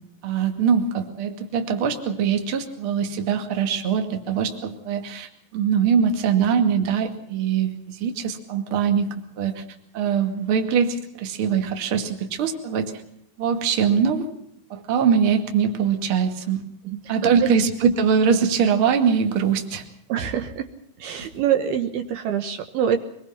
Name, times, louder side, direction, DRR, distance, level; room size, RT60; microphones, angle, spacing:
voice 1, 0.2-9.6 9.9-13.0 13.4-14.3 14.7-16.6 17.1-19.8 21.1-21.3, right 7 dB, 40° right, 5 dB, 2.4 m, -22 dB
voice 2, 20.1-20.7 21.0-23.0, right 9 dB, 70° right, 6 dB, 3.0 m, -25 dB
24.5 x 22.0 x 5.8 m, 0.72 s
omnidirectional pair, 5.0 m